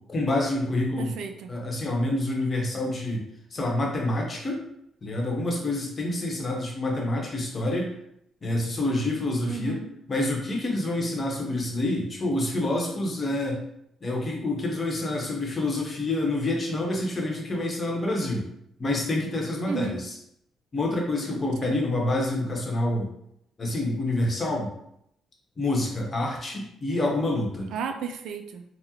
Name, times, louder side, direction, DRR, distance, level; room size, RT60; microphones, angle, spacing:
voice 1, 0.1-1.1 1.5-3.2 3.5-4.7 5.0-7.9 8.4-9.8 10.1-13.6 14.0-18.5 18.8-20.1 20.7-23.1 23.6-24.7 25.6-27.7, left 1 dB, 35° left, -1 dB, 0.9 m, -27 dB
voice 2, 1.0-1.5 9.4-9.9 19.7-20.0 21.6-21.8 27.7-28.6, right 5 dB, 80° right, 7 dB, 0.3 m, -33 dB
3.6 x 2.0 x 2.9 m, 0.76 s
cardioid pair, 90°, 0 cm